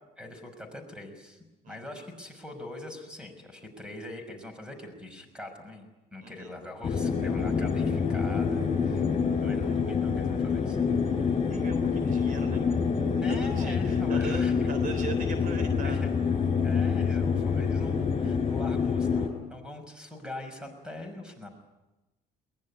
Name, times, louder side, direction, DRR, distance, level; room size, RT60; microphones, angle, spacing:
voice 1, 0.2-9.1 9.4-10.8 13.2-14.7 15.8-16.1 16.6-21.5, left 1 dB, 5° right, 6 dB, 5.9 m, -42 dB
sound 1, 6.8-19.3, left 6 dB, 35° left, 5.8 m, -27 dB
voice 2, 8.4-8.7 11.5-12.8 13.3-16.0, right 5 dB, 55° right, 8 dB, 3.6 m, -40 dB
22.5 x 20.5 x 9.9 m, 1.1 s
cardioid pair, 110°, 17 cm